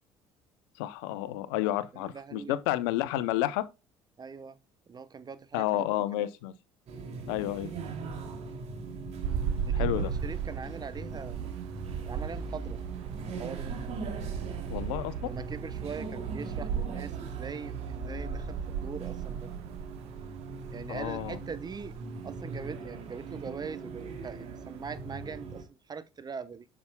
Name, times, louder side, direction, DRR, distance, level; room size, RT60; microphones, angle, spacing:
voice 1, 0.8-3.7 5.5-6.5 7.3-7.7 9.7-10.1 14.7-15.3 20.9-21.4, left 15 dB, 85° left, 0.7 m, -30 dB
voice 2, 1.9-2.6 4.2-4.6 4.9-5.9 6.2-6.3 7.3-7.5 9.6-11.4 12.1-12.8 13.4-13.7 15.2-19.5 20.7-22.0 22.2-26.7, right 6 dB, 30° right, 1.0 m, -41 dB
sound 1, 6.9-25.6, right 5 dB, 60° right, 2.7 m, -40 dB
sound 2, 9.2-25.3, right 7 dB, 85° right, 0.7 m, -37 dB
8.6 x 7.2 x 2.2 m
supercardioid pair, 70°, 13 cm